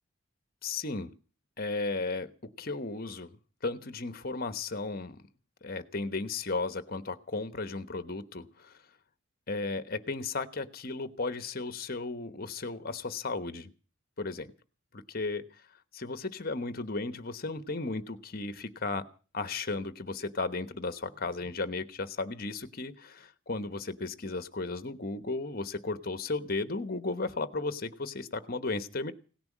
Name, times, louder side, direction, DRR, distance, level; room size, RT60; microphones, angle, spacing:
voice 1, 0.6-1.1 1.6-3.4 3.6-5.2 5.6-8.8 9.5-13.7 14.2-14.5 14.9-15.6 15.9-19.0 19.3-29.1, left 3 dB, 45° left, 11 dB, 1.1 m, -35 dB
17.5 x 10.5 x 7.4 m, 0.39 s
head